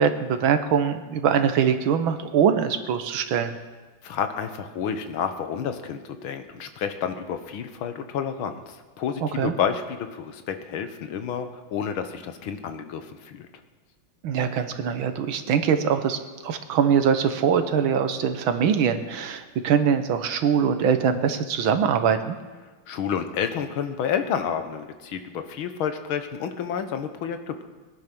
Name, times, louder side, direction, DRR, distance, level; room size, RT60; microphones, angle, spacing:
voice 1, 0.0-3.6 9.2-9.5 14.2-22.4, right 7 dB, 80° right, 8 dB, 1.8 m, -23 dB
voice 2, 4.0-13.5 22.9-27.6, left 7 dB, 85° left, 8 dB, 1.9 m, -30 dB
20.5 x 10.5 x 6.1 m, 1.3 s
omnidirectional pair, 2.2 m